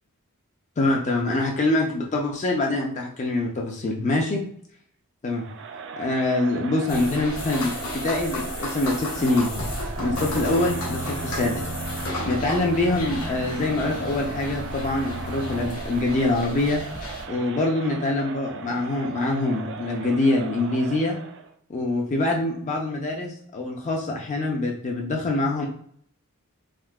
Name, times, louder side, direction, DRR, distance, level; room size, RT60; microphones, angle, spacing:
voice 1, 0.8-4.4 5.2-5.4 6.0-9.5 10.0-11.7 12.3-16.8 17.3-21.2 21.7-25.7, left 2 dB, 35° left, 0 dB, 0.4 m, -24 dB
Crowd, 5.4-21.5, right 6 dB, 55° right, 0.3 m, -38 dB
sound 1, 6.9-17.3, left 2 dB, 80° left, 1.0 m, -34 dB
sound 2, 9.9-15.7, right 1 dB, 85° right, 0.9 m, -34 dB
3.6 x 2.6 x 2.2 m, 0.63 s
head